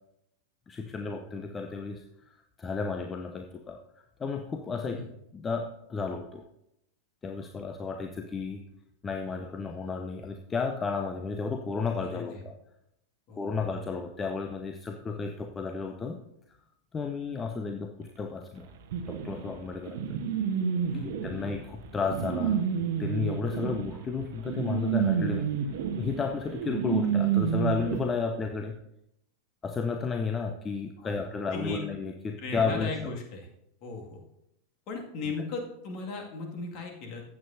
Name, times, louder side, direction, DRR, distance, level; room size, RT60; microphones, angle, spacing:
voice 1, 0.7-3.8 4.2-5.0 5.3-6.4 7.2-8.6 9.0-12.5 13.4-16.2 16.9-18.7 19.1-20.2 21.0-22.6 23.0-25.5 26.0-28.8 29.6-32.9, left 5 dB, 20° left, 4 dB, 0.7 m, -33 dB
voice 2, 12.0-12.4 13.3-13.6 20.9-21.5 31.0-31.2 31.5-31.8 32.4-33.5 33.8-34.2 34.9-37.2, left 3 dB, 40° left, 1 dB, 2.1 m, -37 dB
sound 1, 18.9-28.0, right 8 dB, 50° right, 1.0 m, -29 dB
15.0 x 8.3 x 2.7 m, 0.80 s
figure-of-eight pair, 90°, 0 cm